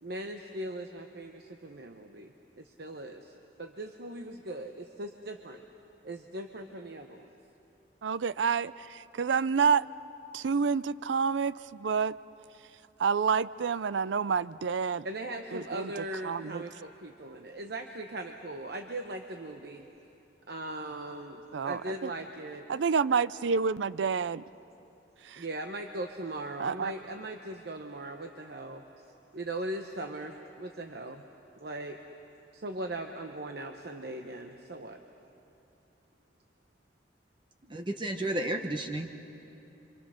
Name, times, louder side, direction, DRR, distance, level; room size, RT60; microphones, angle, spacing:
voice 1, 0.0-5.6 6.0-7.3 15.0-19.9 20.5-22.7 25.4-28.8 29.3-31.3 31.6-32.0 32.5-35.0, right 1 dB, 60° right, 4 dB, 1.0 m, -39 dB
voice 2, 8.0-9.9 10.3-12.2 13.0-15.1 15.5-16.6 21.5-22.1 22.7-24.4 25.2-25.4 26.6-26.9, right 6 dB, 85° right, 17 dB, 0.5 m, -28 dB
voice 3, 37.6-39.1, right 1 dB, 25° right, 4 dB, 1.0 m, -32 dB
28.5 x 25.5 x 6.4 m, 3.0 s
head